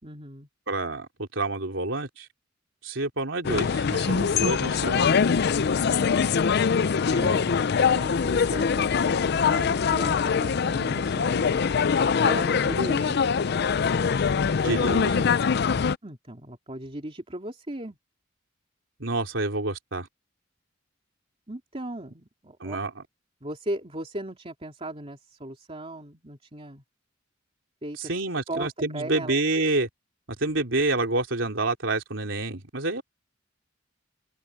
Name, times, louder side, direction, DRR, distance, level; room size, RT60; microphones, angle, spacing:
voice 1, 0.0-0.5 7.1-7.6 7.8-11.7 12.2-13.2 16.0-18.0 21.5-22.8 23.4-26.8 27.8-28.1 28.5-29.4, right 1 dB, 30° right, 2.9 m, -37 dB
voice 2, 0.7-2.3 2.8-5.1 7.2-7.4 14.6-15.3 19.0-20.1 22.6-22.9 28.0-29.9 30.4-33.0, right 2 dB, 75° right, 3.6 m, -28 dB
sound 1, 3.4-16.0, left 6 dB, 55° left, 0.5 m, -23 dB
open air
head